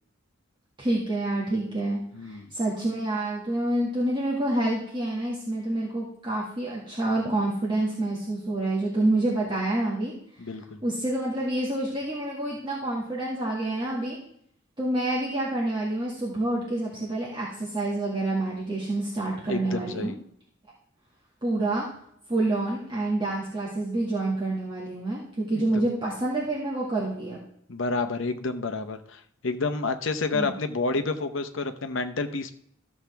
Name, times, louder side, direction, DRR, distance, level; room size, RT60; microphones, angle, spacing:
voice 1, 0.8-10.1 10.8-14.2 14.8-20.1 21.4-21.9 22.3-27.4 30.3-30.5, right 2 dB, 25° right, -7 dB, 1.9 m, -28 dB
voice 2, 2.1-2.5 10.4-10.8 19.5-20.2 25.5-25.9 27.7-32.5, left 3 dB, 70° left, 8 dB, 0.8 m, -30 dB
13.5 x 7.2 x 3.4 m, 0.70 s
head